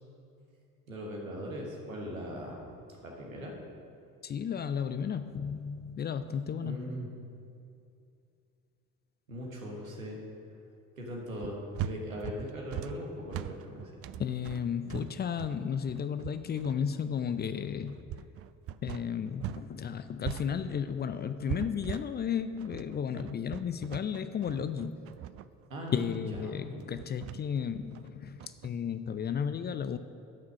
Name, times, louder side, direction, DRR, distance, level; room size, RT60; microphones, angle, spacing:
voice 1, 0.9-2.7 3.0-3.5 6.6-7.1 9.3-10.2 11.0-13.9 25.7-26.8, equal, 85° right, -1 dB, 1.4 m, -40 dB
voice 2, 4.2-6.9 14.2-17.9 18.8-25.0 25.9-30.0, left 7 dB, 25° left, 11 dB, 0.4 m, -33 dB
sound 1, 11.4-19.7 19.9-28.7, right 11 dB, 40° right, 0.4 m, -41 dB
12.0 x 6.0 x 6.3 m, 2.6 s
figure-of-eight pair, 50°, 40 cm